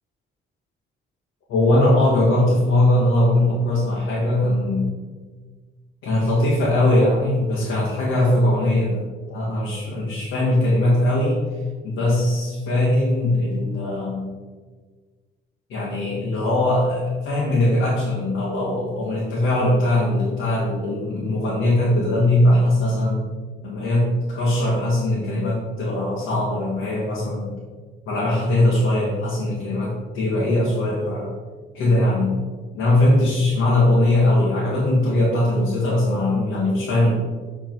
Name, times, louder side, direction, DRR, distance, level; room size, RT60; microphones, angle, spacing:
voice 1, 1.5-4.9 6.0-11.4 11.8-14.3 15.7-23.2 23.6-27.5 28.1-31.3 31.7-32.4 32.7-37.1, left 1 dB, 85° left, -7 dB, 2.1 m, -20 dB
7.7 x 4.3 x 4.6 m, 1.4 s
cardioid pair, 90°, 20 cm